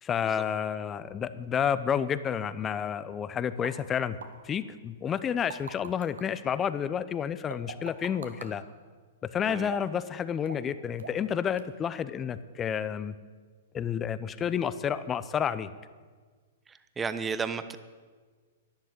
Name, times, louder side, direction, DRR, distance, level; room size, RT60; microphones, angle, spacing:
voice 1, 0.0-4.2 4.4-8.6 9.3-13.1 13.7-15.7, left 8 dB, 20° left, 14 dB, 0.7 m, -30 dB
sound 1, 3.6-3.7 4.2-4.3 5.2-6.2 7.5-8.5 9.7-10.0 10.5-10.7 11.0-11.3 11.6-11.7, right 5 dB, 85° right, 1.6 m, -41 dB
voice 2, 16.7-17.8, right 5 dB, 15° right, 12 dB, 0.8 m, -33 dB
12.0 x 10.5 x 8.2 m, 1.5 s
hypercardioid pair, 125°, 0 cm